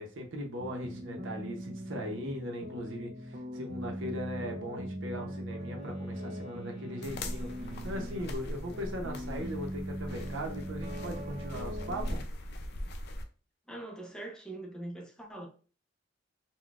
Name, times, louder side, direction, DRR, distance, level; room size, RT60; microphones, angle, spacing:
voice 1, 0.0-12.2, equal, 85° right, 0.7 m, -39 dB
sound 1, 0.6-12.2, equal, 45° right, 0.5 m, -40 dB
Wind instrument woodwind instrument, 5.6-8.5, left 2 dB, 35° left, 1.1 m, -57 dB
sound 2, 7.0-13.2, left 1 dB, 55° left, 0.4 m, -40 dB
voice 2, 13.7-15.5, right 2 dB, 5° left, 0.6 m, -42 dB
3.8 x 2.2 x 2.3 m
head